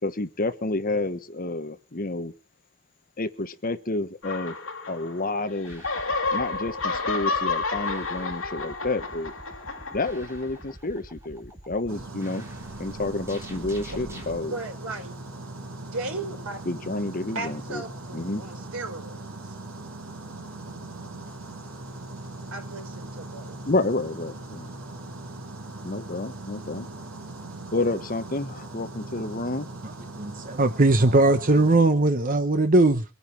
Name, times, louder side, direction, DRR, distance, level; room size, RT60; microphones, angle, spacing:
voice 1, 0.0-2.3 3.2-4.6 4.9-5.8 6.3-9.3 9.9-12.4 12.8-14.6 16.7-17.8 18.1-18.4 23.6-24.7 25.8-26.9 27.7-29.7, left 2 dB, 40° left, 1.2 m, -29 dB
sound 1, 4.2-5.4 5.6-10.6, left 3 dB, 70° left, 2.6 m, -30 dB
sound 2, 5.6-14.4, equal, 15° right, 3.5 m, -45 dB
sound 3, 11.9-31.8, right 2 dB, 75° right, 3.9 m, -40 dB
voice 2, 14.5-15.2 15.7-16.6 17.3-19.3 22.5-23.6, right 2 dB, 90° right, 5.1 m, -36 dB
voice 3, 30.2-33.0, right 2 dB, 40° right, 0.9 m, -19 dB
24.0 x 9.6 x 4.5 m
head